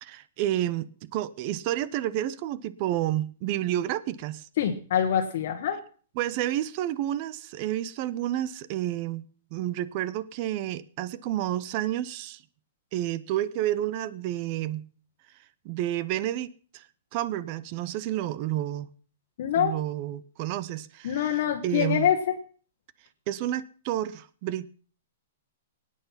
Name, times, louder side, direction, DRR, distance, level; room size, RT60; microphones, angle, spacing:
voice 1, 0.0-4.4 6.2-9.2 9.5-12.4 12.9-14.8 15.6-16.8 17.1-18.9 19.6-22.1 23.3-24.7, right 13 dB, 30° right, 0.6 m, -30 dB
voice 2, 4.6-5.8 19.4-19.7 21.0-22.2, left 9 dB, 50° left, 1.4 m, -25 dB
22.5 x 9.1 x 5.7 m
hypercardioid pair, 170°, 0 cm